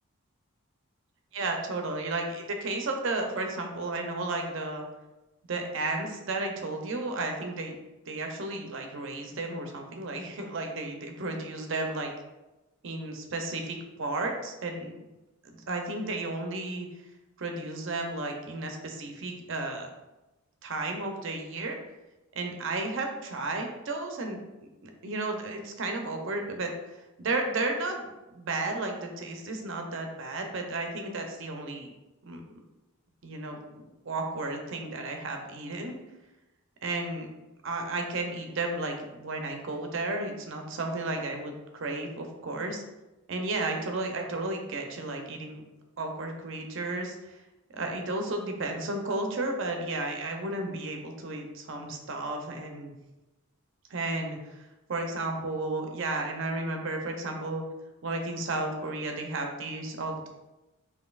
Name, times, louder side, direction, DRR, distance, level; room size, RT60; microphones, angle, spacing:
voice 1, 1.3-4.9 5.5-7.7 8.1-12.1 12.8-15.0 15.4-16.9 17.4-19.9 20.6-21.8 22.4-24.4 24.8-26.7 27.2-31.9 32.2-32.4 33.2-36.0 36.8-37.3 37.6-42.8 43.3-45.6 46.0-47.4 47.7-52.9 53.9-54.4 54.9-57.6 58.0-60.3, right 2 dB, 55° right, 3 dB, 0.6 m, -33 dB
5.2 x 2.7 x 2.4 m, 1.0 s
head